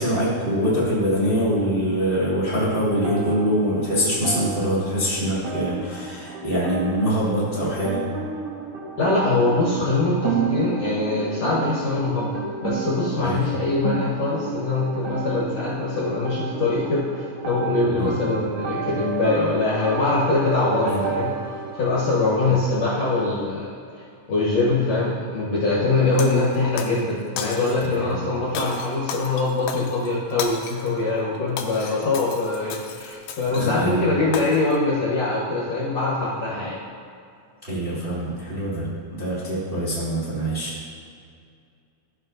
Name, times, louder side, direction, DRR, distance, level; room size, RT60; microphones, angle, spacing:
voice 1, 0.0-8.0 13.2-13.4 17.9-18.1 20.8-21.0 22.4-22.5 28.1-28.2 31.8-31.9 33.5-34.0 37.6-40.7, equal, 20° right, -9 dB, 1.5 m, -24 dB
sound 1, 2.5-22.3, right 5 dB, 65° right, 1.8 m, -31 dB
voice 2, 9.0-21.3 21.8-23.7 24.3-36.8, left 3 dB, 55° left, -7 dB, 2.1 m, -23 dB
Shatter, 26.2-27.0 27.4-28.0 28.6-30.9 31.3-33.9 34.3-34.8, left 6 dB, 85° left, 2.3 m, -35 dB
14.0 x 6.4 x 2.6 m, 2.3 s
omnidirectional pair, 4.2 m